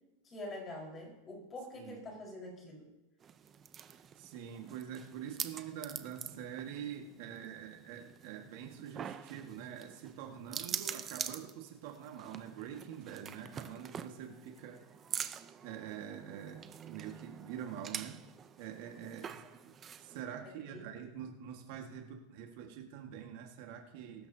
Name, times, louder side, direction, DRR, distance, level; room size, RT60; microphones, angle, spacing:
voice 1, 0.2-2.9 20.4-20.9, left 1 dB, 25° left, -1 dB, 4.7 m, -46 dB
sound 1, 3.2-20.2, right 8 dB, 25° right, 0.6 m, -45 dB
voice 2, 3.9-14.8 15.6-18.2 18.6-19.4 20.0-24.3, right 9 dB, 60° right, 3 dB, 1.7 m, -45 dB
21.5 x 12.5 x 2.8 m, 1.0 s
supercardioid pair, 145°, 0 cm